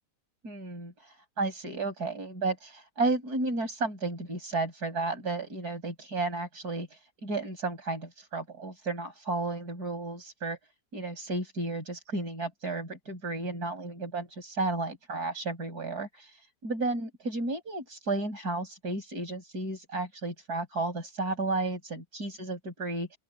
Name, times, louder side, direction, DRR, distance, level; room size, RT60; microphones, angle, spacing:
voice 1, 0.4-10.6 10.9-23.2, right 3 dB, 70° right, 7.8 m, -33 dB
open air
omnidirectional pair, 1.7 m